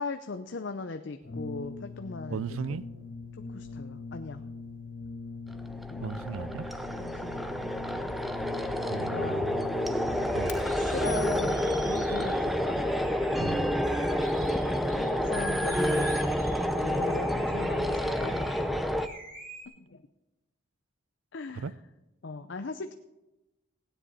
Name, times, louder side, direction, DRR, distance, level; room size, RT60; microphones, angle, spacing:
voice 1, 0.0-2.4 3.5-4.4 5.9-6.0 7.0-7.7 9.0-9.4 10.7-12.9 14.9-16.2 16.8-18.8 19.8-20.0 21.3-21.7 22.2-22.9, left 3 dB, 60° left, 0.6 m, -39 dB
Brass instrument, 1.2-10.6, left 3 dB, 80° left, 3.4 m, -41 dB
voice 2, 2.3-2.9 6.0-6.7 8.9-9.7 10.3-10.7 13.4-13.8 21.5-21.7, right 5 dB, 90° right, 0.5 m, -36 dB
sound 1, 5.5-19.1, equal, ahead, 0.5 m, -29 dB
sound 2, 10.2-15.1 15.7-18.6 19.0-19.7, right 2 dB, 45° right, 3.6 m, -48 dB
16.5 x 10.0 x 4.1 m
head